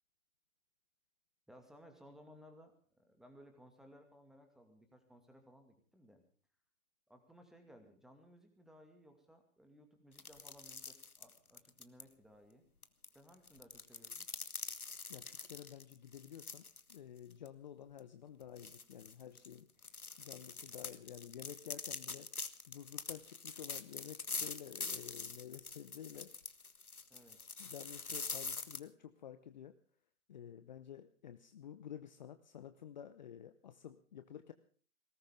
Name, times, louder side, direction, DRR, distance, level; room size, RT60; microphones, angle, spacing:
voice 1, 1.5-6.2 7.1-12.6 13.1-14.3 27.1-27.4, equal, ahead, 5 dB, 2.2 m, -60 dB
sound 1, 10.2-12.0 12.8-17.0 17.3-17.5 18.0-18.1 18.6-28.8, left 4 dB, 85° left, 1.7 m, -45 dB
voice 2, 15.1-16.6 16.9-19.7 20.2-22.3 22.7-26.3 27.6-29.7 30.3-34.5, left 9 dB, 30° left, 11 dB, 0.9 m, -51 dB
21.0 x 18.5 x 3.7 m, 0.44 s
figure-of-eight pair, 135°, 42 cm